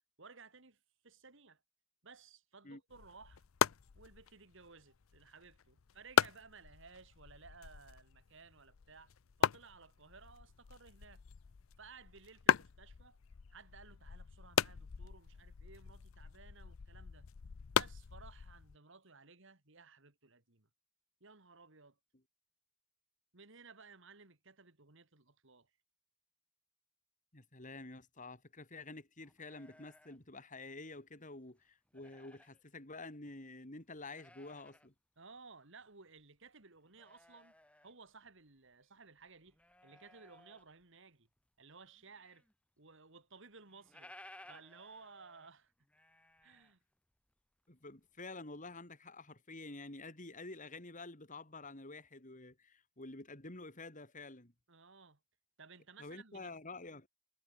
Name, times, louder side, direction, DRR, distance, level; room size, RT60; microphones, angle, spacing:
voice 1, 0.2-1.6 2.0-3.4 4.0-9.1 9.4-11.2 11.8-13.2 13.5-17.3 17.7-20.7 21.2-22.0 23.3-25.7 35.2-37.5 37.8-41.3 41.6-42.5 42.8-44.1 44.5-45.7 46.4-46.8 54.7-55.2 55.6-56.5, right 4 dB, 65° right, 2.6 m, -58 dB
sound 1, 2.9-18.7, left 7 dB, 90° left, 0.6 m, -38 dB
voice 2, 27.3-34.9 47.7-54.5 56.0-57.1, left 2 dB, 40° left, 3.8 m, -49 dB
sound 2, 29.2-31.1 31.5-32.6 33.1-33.2 33.8-34.9 35.2-35.3 35.7-38.7 39.0-41.0 41.4-42.5 42.8-42.9 43.1-43.2 43.5-47.3 47.7-48.2, left 1 dB, 5° left, 3.9 m, -61 dB
head